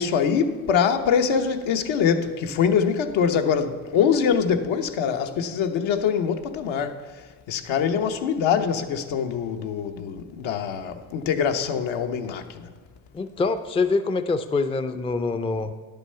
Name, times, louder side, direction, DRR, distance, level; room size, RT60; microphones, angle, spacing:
voice 1, 0.0-7.0 7.5-12.7, left 7 dB, 75° left, 1.0 m, -24 dB
voice 2, 13.1-15.7, left 3 dB, 15° left, 0.4 m, -25 dB
10.5 x 6.9 x 5.6 m
cardioid pair, 105°, 47 cm